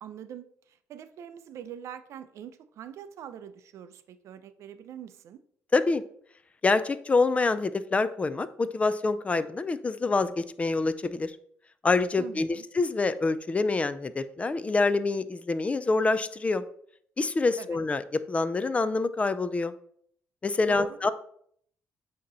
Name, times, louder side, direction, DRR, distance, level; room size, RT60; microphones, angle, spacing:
voice 1, 0.0-5.4 12.2-12.6 17.6-17.8 20.6-21.0, right 9 dB, 70° right, 12 dB, 0.4 m, -43 dB
voice 2, 6.6-11.3 11.8-16.6 17.2-19.7 20.4-21.1, left 3 dB, 25° left, 13 dB, 0.4 m, -26 dB
8.4 x 2.9 x 3.9 m, 0.64 s
cardioid pair, 95°, 5 cm